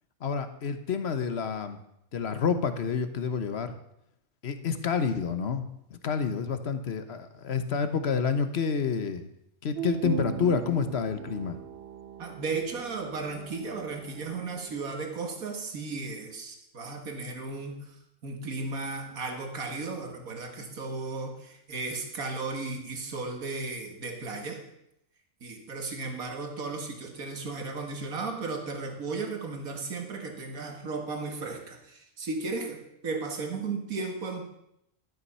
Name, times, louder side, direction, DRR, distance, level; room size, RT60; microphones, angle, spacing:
voice 1, 0.2-1.8 2.1-3.8 4.4-5.6 5.9-9.3 9.6-11.6, left 6 dB, 50° left, 9 dB, 1.2 m, -29 dB
sound 1, 9.7-15.1, right 9 dB, 60° right, 0.7 m, -39 dB
voice 2, 12.2-17.9 18.2-24.6 25.4-34.4, right 3 dB, 80° right, 4 dB, 2.1 m, -35 dB
12.0 x 11.5 x 5.5 m, 0.79 s
omnidirectional pair, 1.5 m